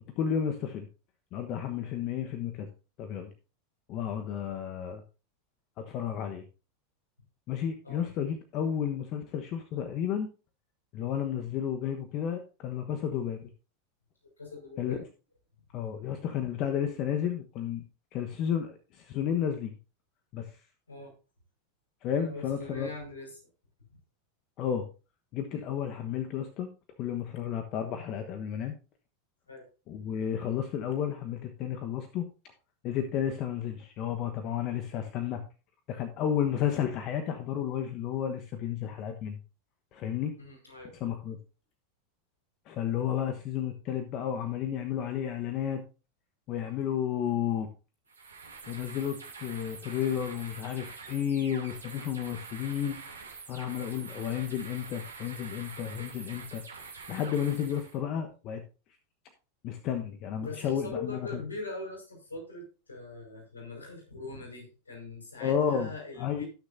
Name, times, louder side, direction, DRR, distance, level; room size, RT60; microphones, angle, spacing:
voice 1, 0.2-0.8 1.3-2.7 3.0-3.3 3.9-5.0 5.9-6.4 7.5-10.3 10.9-13.5 14.8-15.0 15.7-17.8 18.1-19.7 20.3-20.5 22.0-22.9 24.6-24.9 25.3-26.7 27.0-28.7 29.9-32.2 32.8-35.4 35.9-39.4 39.9-40.3 41.0-41.4 42.7-45.8 46.5-47.7 48.7-53.0 53.5-56.6 57.1-58.6 59.6-61.3 65.4-65.9 66.2-66.4, left 9 dB, 45° left, 6 dB, 1.2 m, -32 dB
voice 2, 14.4-15.0 20.9-21.1 22.2-23.4 25.5-25.7 29.5-29.6 40.4-40.9 60.4-66.4, left 3 dB, 85° left, 1 dB, 5.0 m, -41 dB
sound 1, 48.1-58.0, right 4 dB, 90° right, 2.7 m, -46 dB
18.0 x 6.6 x 2.7 m, 0.33 s
hypercardioid pair, 90°, 0 cm